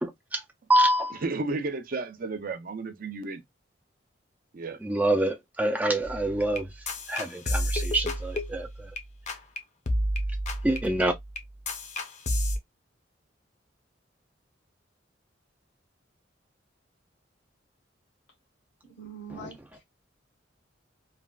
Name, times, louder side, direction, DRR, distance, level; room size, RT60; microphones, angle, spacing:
voice 1, 0.0-0.4 0.7-1.2 4.8-6.7 7.1-8.9 10.6-11.1 19.4-19.5, right 1 dB, 10° right, 0.3 m, -26 dB
voice 2, 1.2-3.4 4.5-4.8, right 3 dB, 50° right, 0.6 m, -32 dB
sound 1, 6.0-9.0 9.3-9.6 9.9-12.6, equal, 40° left, 0.6 m, -31 dB
voice 3, 18.8-19.8, right 3 dB, 80° left, 1.1 m, -44 dB
3.2 x 2.4 x 2.3 m
head